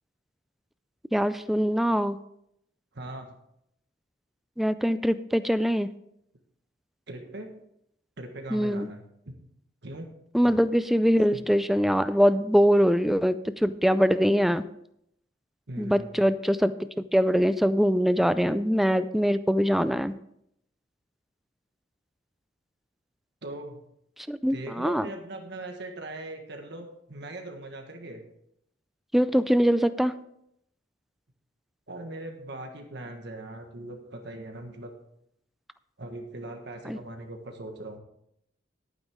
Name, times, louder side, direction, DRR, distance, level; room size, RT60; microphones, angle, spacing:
voice 1, 1.1-2.2 4.6-5.9 8.5-8.9 10.3-14.7 15.8-20.2 24.3-25.1 29.1-30.1 36.9-37.0, equal, ahead, 13 dB, 0.3 m, -23 dB
voice 2, 2.9-3.3 7.1-7.5 8.2-9.3 9.8-10.1 15.7-16.1 23.4-23.8 24.5-28.2 31.9-34.9 36.0-38.0, right 1 dB, 60° right, 4 dB, 1.5 m, -40 dB
11.0 x 9.3 x 3.6 m, 0.75 s
head